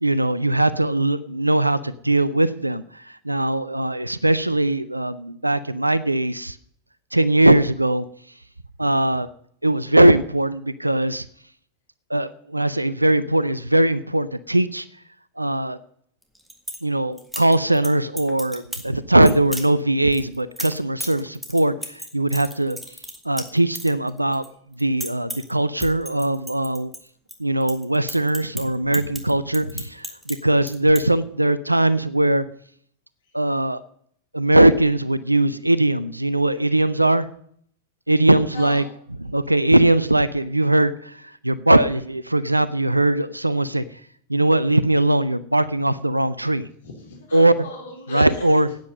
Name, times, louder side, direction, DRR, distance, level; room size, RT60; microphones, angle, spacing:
voice 1, 0.0-6.6 7.1-8.0 8.8-9.3 9.6-11.2 12.1-14.9 15.4-15.8 16.8-22.8 23.2-24.4 24.8-26.9 27.4-32.4 33.3-33.8 34.3-37.3 38.1-38.8 39.2-43.8 44.3-46.7 47.3-47.5 48.1-48.8, right 1 dB, 85° right, 16 dB, 0.5 m, -20 dB
sound 1, 16.2-16.8 17.2-17.9 18.2-18.9 19.2-19.7 20.1-24.5 24.7-25.5 25.8-27.3 27.6-30.4 30.6-31.0, equal, 5° right, 1.8 m, -34 dB
voice 2, 38.5-38.9 46.8-48.6, left 3 dB, 65° left, 1 dB, 3.6 m, -38 dB
10.5 x 9.0 x 7.6 m, 0.64 s
figure-of-eight pair, 90°, 0 cm